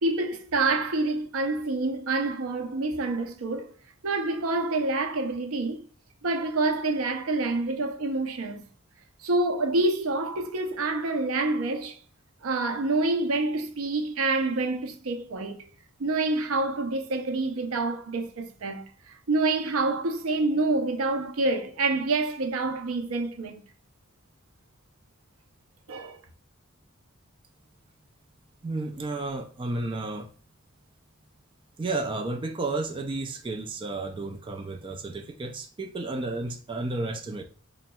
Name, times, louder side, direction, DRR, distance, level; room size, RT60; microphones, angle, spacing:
voice 1, 0.0-3.7 4.0-5.8 6.2-8.6 9.2-12.0 12.4-15.7 16.0-23.6 25.9-26.2, right 2 dB, 75° right, 0.6 m, -27 dB
voice 2, 28.6-30.3 31.8-37.4, right 2 dB, 25° right, 0.4 m, -32 dB
5.0 x 2.8 x 2.2 m
head